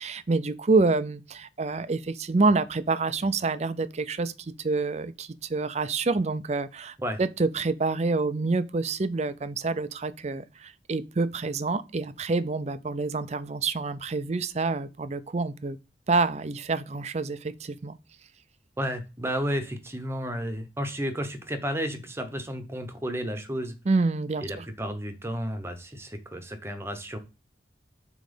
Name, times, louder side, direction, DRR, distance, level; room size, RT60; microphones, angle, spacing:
voice 1, 0.0-15.8 16.1-18.0 23.9-24.6, right 3 dB, 35° right, 0.5 m, -27 dB
voice 2, 18.8-23.7 24.4-27.2, equal, 15° right, 1.0 m, -32 dB
7.5 x 3.1 x 5.2 m
head